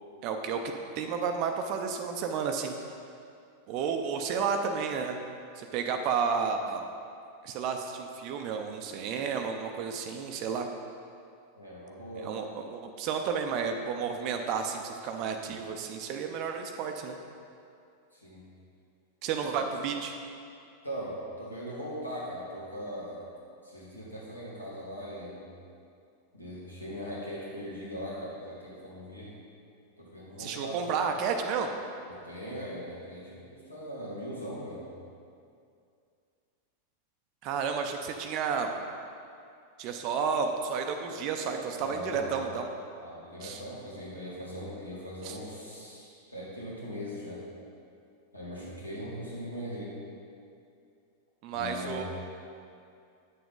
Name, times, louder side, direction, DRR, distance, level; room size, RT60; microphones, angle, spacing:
voice 1, 0.2-0.6 1.0-2.7 3.7-5.2 5.6-6.8 7.4-10.7 12.2-17.2 19.2-20.1 30.4-31.7 37.4-38.7 39.8-42.7 43.4-43.6 45.2-45.4 51.4-52.0, right 6 dB, 40° right, 5 dB, 0.6 m, -31 dB
voice 2, 11.6-12.5 18.1-18.4 19.6-19.7 20.8-23.2 23.6-25.4 26.3-29.3 30.0-31.0 32.1-34.8 41.7-42.5 43.0-47.4 48.3-49.9 51.5-52.0, equal, 85° left, -7 dB, 2.2 m, -40 dB
9.2 x 6.9 x 3.8 m, 2.4 s
figure-of-eight pair, 90°, 0 cm